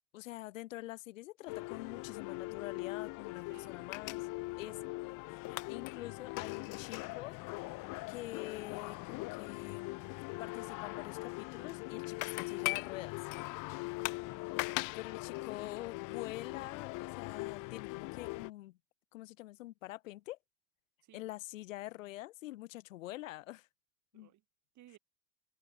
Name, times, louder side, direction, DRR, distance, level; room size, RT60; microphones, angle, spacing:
voice 1, 0.1-4.3 4.6-4.7 5.0-7.4 8.1-13.2 14.9-18.8 19.1-20.4 21.1-23.7 24.1-24.3, left 17 dB, 80° left, 0.7 m, -46 dB
Air hockey arcade ambience distant music, 1.5-18.5, left 24 dB, 55° left, 1.0 m, -40 dB
voice 2, 4.6-4.9 14.1-14.5 21.0-21.3 24.1-24.4 24.7-25.0, right 13 dB, 45° right, 5.0 m, -61 dB
hypercardioid pair, 75°, 39 cm